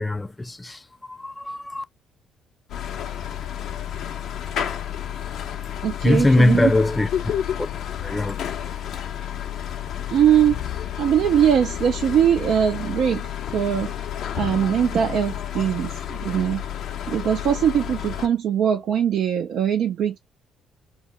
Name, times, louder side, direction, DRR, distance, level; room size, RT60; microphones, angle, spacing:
voice 1, 0.0-1.8 6.0-7.3 7.6-7.7 8.0-8.4, left 2 dB, 20° left, 0.4 m, -21 dB
sound 1, 2.7-18.3, left 10 dB, 65° left, 0.6 m, -31 dB
voice 2, 5.8-6.7 10.1-10.6 11.0-13.9 14.3-16.6 17.1-20.2, right 9 dB, 60° right, 0.5 m, -21 dB
2.1 x 2.1 x 3.7 m
hypercardioid pair, 50°, 0 cm